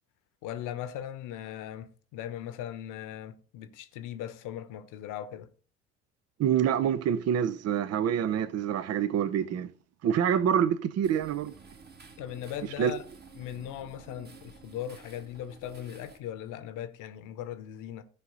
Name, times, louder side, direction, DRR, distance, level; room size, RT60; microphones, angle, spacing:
voice 1, 0.4-5.5 12.2-13.0 13.4-18.0, left 10 dB, 55° left, 1.1 m, -39 dB
voice 2, 6.4-9.7 10.0-11.5 12.8-12.9, right 9 dB, 45° right, 0.8 m, -26 dB
sound 1, 11.0-16.2, right 4 dB, 25° right, 1.6 m, -51 dB
15.0 x 5.0 x 4.1 m
figure-of-eight pair, 60°, 37 cm